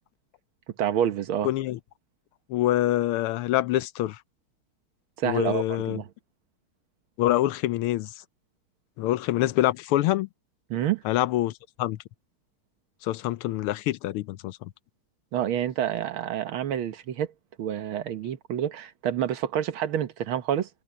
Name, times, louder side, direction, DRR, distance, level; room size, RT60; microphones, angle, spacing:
voice 1, 0.8-1.5 5.2-6.1 10.7-11.0 15.3-17.3 17.6-20.7, right 10 dB, 75° right, 1.9 m, -28 dB
voice 2, 1.4-1.8 2.5-4.2 5.2-6.0 7.2-8.1 9.0-10.3 11.0-11.5 11.8-12.0 13.0-14.7, left 14 dB, 85° left, 1.6 m, -25 dB
omnidirectional pair, 2.4 m